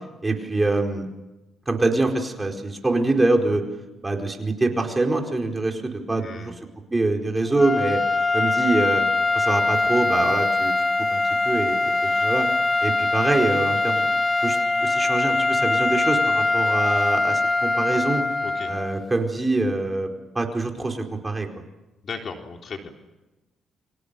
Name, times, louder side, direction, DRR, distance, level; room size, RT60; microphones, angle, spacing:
voice 1, 0.2-1.1 1.7-3.6 4.0-6.5 6.9-8.0 8.3-9.0 9.3-10.7 11.1-12.5 12.8-14.1 14.4-18.2 18.7-20.1 20.3-21.6, right 2 dB, 20° right, 2 dB, 4.6 m, -24 dB
voice 2, 6.2-6.6 18.4-18.7 22.0-22.9, left 5 dB, 50° left, 3 dB, 3.7 m, -36 dB
sound 1, 7.5-19.1, left 3 dB, 20° left, 1.5 m, -22 dB
29.5 x 25.5 x 6.9 m, 1.1 s
cardioid pair, 90°, 0 cm